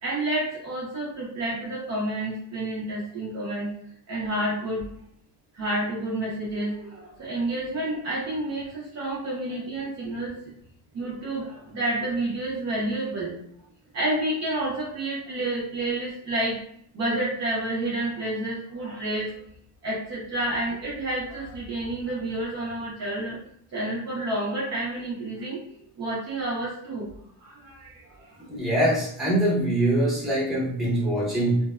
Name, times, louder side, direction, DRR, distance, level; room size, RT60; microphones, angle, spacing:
voice 1, 0.0-3.7 4.1-4.9 5.5-10.3 10.9-13.4 13.9-16.6 16.9-19.3 19.8-23.4 23.7-25.6 26.0-27.1 27.4-28.4, right 1 dB, 35° right, -6 dB, 0.5 m, -29 dB
voice 2, 28.5-31.6, right 1 dB, ahead, -7 dB, 0.7 m, -23 dB
2.6 x 2.1 x 2.3 m, 0.68 s
cardioid pair, 165°, 45 cm